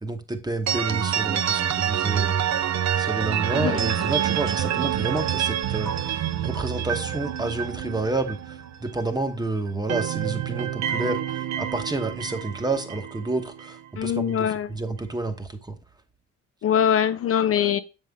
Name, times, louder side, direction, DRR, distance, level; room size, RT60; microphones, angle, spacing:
voice 1, 0.0-2.5 3.0-15.8, right 2 dB, 15° right, 1.1 m, -29 dB
sound 1, 0.7-9.4 9.7-13.8, right 10 dB, 65° right, 0.7 m, -27 dB
voice 2, 14.0-14.7 16.6-17.8, left 9 dB, 50° left, 0.5 m, -22 dB
7.1 x 5.5 x 3.6 m
cardioid pair, 90°, 30 cm